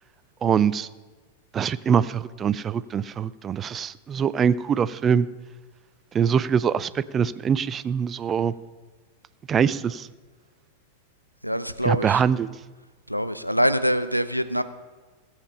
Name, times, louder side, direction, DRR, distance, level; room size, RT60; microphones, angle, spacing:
voice 1, 0.4-0.9 1.5-5.3 6.1-8.5 9.5-10.1 11.8-12.5, right 7 dB, 25° right, 17 dB, 0.4 m, -23 dB
voice 2, 11.4-12.2 13.1-14.6, equal, 90° left, 13 dB, 0.5 m, -24 dB
16.5 x 7.4 x 5.5 m, 1.3 s
figure-of-eight pair, 90°, 0 cm